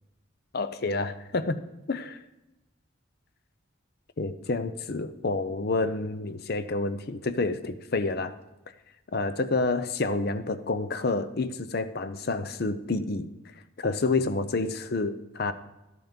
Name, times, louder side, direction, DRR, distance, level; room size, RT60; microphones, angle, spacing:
voice 1, 0.5-1.6 1.9-2.2 4.2-8.3 9.1-13.3 13.8-15.5, left 3 dB, 50° left, 11 dB, 0.6 m, -29 dB
12.0 x 5.8 x 5.2 m, 1.0 s
head